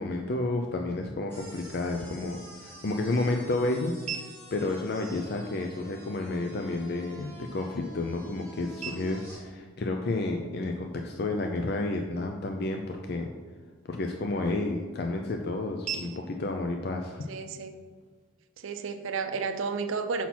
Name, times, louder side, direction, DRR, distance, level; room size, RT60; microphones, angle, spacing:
voice 1, 0.0-3.9 4.5-13.3 13.8-17.2, left 2 dB, 50° left, 3 dB, 0.4 m, -31 dB
sound 1, 1.3-9.4, equal, 10° left, 1.7 m, -49 dB
sound 2, 2.3-18.3, right 7 dB, 35° right, 0.8 m, -47 dB
voice 2, 14.3-14.6 17.3-17.7 18.6-20.3, right 4 dB, 70° right, 8 dB, 0.5 m, -32 dB
5.8 x 5.8 x 4.3 m, 1.5 s
head